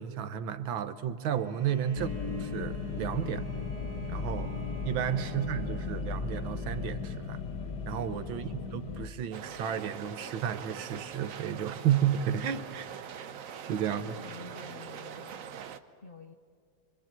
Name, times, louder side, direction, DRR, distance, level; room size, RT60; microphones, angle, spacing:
voice 1, 0.0-3.4 4.1-4.5 4.8-7.4 7.9-13.3 13.7-14.2, right 9 dB, 85° right, 11 dB, 1.8 m, -32 dB
Bowed string instrument, 1.3-6.4, right 5 dB, 35° right, 1.4 m, -49 dB
sound 1, 2.0-9.1, left 5 dB, 60° left, 1.8 m, -36 dB
voice 2, 5.2-5.9 8.3-8.9 14.2-15.4 16.0-16.3, left 3 dB, 40° left, 5 dB, 0.9 m, -49 dB
sound 2, 9.3-15.8, right 8 dB, 55° right, 1.0 m, -43 dB
25.0 x 24.5 x 7.4 m, 2.1 s
omnidirectional pair, 2.1 m